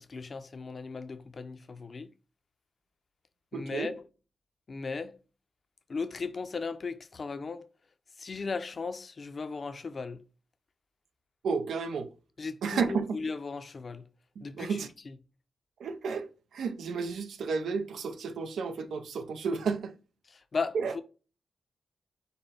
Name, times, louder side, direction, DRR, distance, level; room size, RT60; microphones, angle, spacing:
voice 1, 0.0-2.1 3.5-4.0 4.7-5.1 5.9-7.6 8.2-10.2 12.4-14.0 14.4-14.8 20.5-21.0, left 4 dB, 50° left, 0.5 m, -36 dB
voice 2, 3.5-3.9 11.4-12.1 12.6-13.2 14.4-14.9 15.8-19.9 20.7-20.9, right 5 dB, 85° right, 0.5 m, -32 dB
5.3 x 2.2 x 4.1 m
cardioid pair, 55°, 0 cm